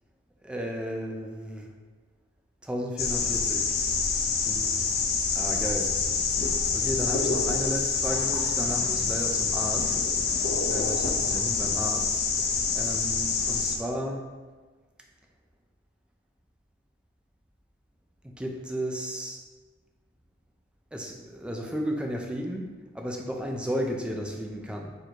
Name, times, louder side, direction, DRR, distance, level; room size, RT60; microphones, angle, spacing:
voice 1, 0.4-1.7 2.6-3.8 4.4-4.7 5.3-5.9 6.7-10.0 10.4-14.3 18.2-19.4 20.9-24.9, equal, 5° right, 1 dB, 0.4 m, -34 dB
sound 1, 3.0-13.8, left 5 dB, 50° left, 0.5 m, -26 dB
4.3 x 2.6 x 4.5 m, 1.3 s
head